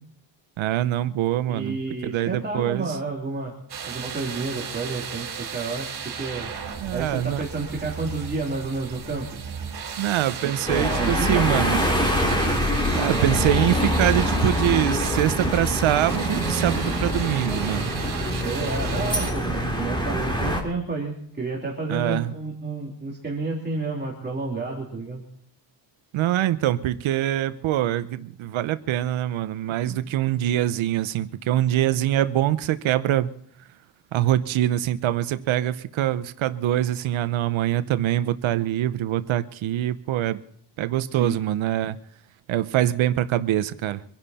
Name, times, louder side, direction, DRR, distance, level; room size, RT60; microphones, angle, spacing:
voice 1, 0.6-3.0 6.8-7.4 10.0-11.8 12.9-18.0 21.9-22.3 26.1-33.3 34.1-40.4 40.8-42.0 42.5-44.0, right 13 dB, 85° right, 0.8 m, -24 dB
voice 2, 1.5-3.5 3.8-5.9 6.2-6.5 6.9-9.2 10.4-11.9 18.4-25.2 29.9-30.0 41.2-41.4, right 3 dB, 20° right, 3.0 m, -30 dB
sound 1, 3.7-19.3, right 7 dB, 55° right, 3.6 m, -35 dB
sound 2, 10.7-20.6, equal, 10° left, 3.1 m, -24 dB
25.0 x 11.0 x 4.2 m
cardioid pair, 150°, 46 cm